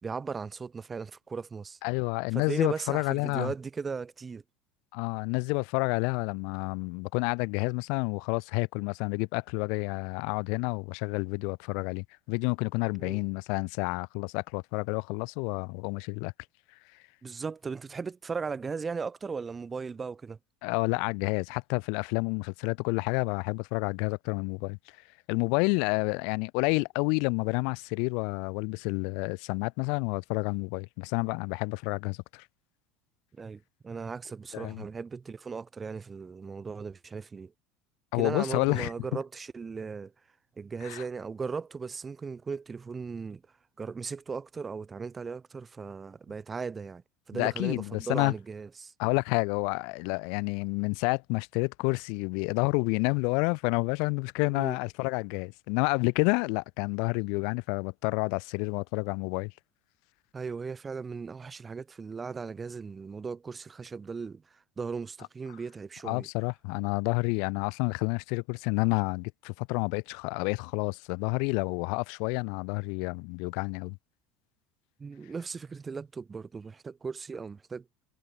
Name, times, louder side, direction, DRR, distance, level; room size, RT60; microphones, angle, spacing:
voice 1, 0.0-1.8 2.3-4.4 13.0-13.2 17.2-20.4 33.3-37.5 38.1-40.1 40.6-43.4 43.8-47.0 47.3-48.9 54.5-54.8 60.3-64.4 64.8-66.3 75.0-77.8, right 5 dB, 15° right, 1.6 m, -37 dB
voice 2, 1.8-3.5 4.9-16.3 20.6-24.8 25.3-32.5 34.5-34.8 38.1-38.9 40.8-41.0 47.3-48.3 49.0-59.5 66.0-74.0, left 37 dB, 60° left, 0.7 m, -29 dB
cardioid pair, 165°, 0 cm